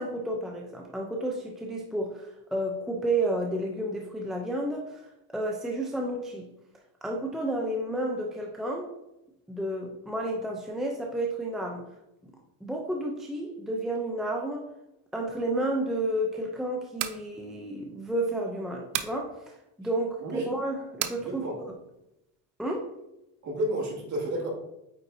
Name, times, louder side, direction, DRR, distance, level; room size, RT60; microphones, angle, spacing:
voice 1, 0.0-6.5 7.0-8.9 9.5-11.9 12.6-14.7 15.1-21.7 22.6-22.9, right 1 dB, ahead, 0 dB, 0.5 m, -31 dB
sound 1, 16.8-17.2 18.9-19.2 21.0-21.2, right 13 dB, 85° right, 0.7 m, -31 dB
voice 2, 21.2-21.5 23.4-24.5, right 1 dB, 40° right, -2 dB, 2.3 m, -31 dB
9.0 x 3.9 x 2.7 m, 0.86 s
cardioid pair, 120°, 42 cm